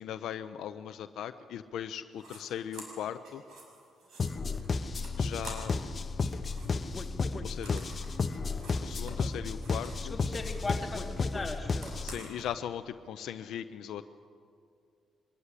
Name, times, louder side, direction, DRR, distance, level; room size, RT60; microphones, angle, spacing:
voice 1, 0.0-3.4 5.2-5.8 7.4-7.8 8.8-10.2 12.0-14.0, left 10 dB, 80° left, 10 dB, 0.6 m, -39 dB
sound 1, 2.2-2.4 2.7-6.0 6.2-10.1 10.4-12.5, right 2 dB, 65° right, 6.3 m, -50 dB
sound 2, 4.2-12.2, left 4 dB, 40° left, 1.0 m, -33 dB
voice 2, 10.0-11.9, left 3 dB, 15° left, 0 dB, 3.5 m, -38 dB
24.5 x 13.5 x 10.0 m, 2.3 s
cardioid pair, 90°, 0 cm